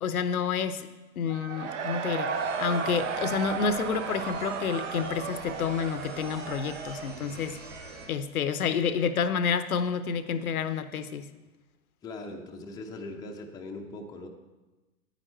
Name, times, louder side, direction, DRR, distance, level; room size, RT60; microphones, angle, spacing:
voice 1, 0.0-0.9 1.2-2.3 2.6-7.6 8.1-11.3, left 6 dB, 70° left, 12 dB, 0.8 m, -29 dB
Cheering / Crowd, 1.3-8.0, right 6 dB, 55° right, 1.0 m, -34 dB
sound 1, 2.3-8.1, right 2 dB, 75° right, 3.7 m, -46 dB
voice 2, 12.0-14.3, left 2 dB, 10° left, 1 dB, 0.6 m, -40 dB
9.7 x 9.2 x 4.4 m, 1.1 s
figure-of-eight pair, 110°, 44 cm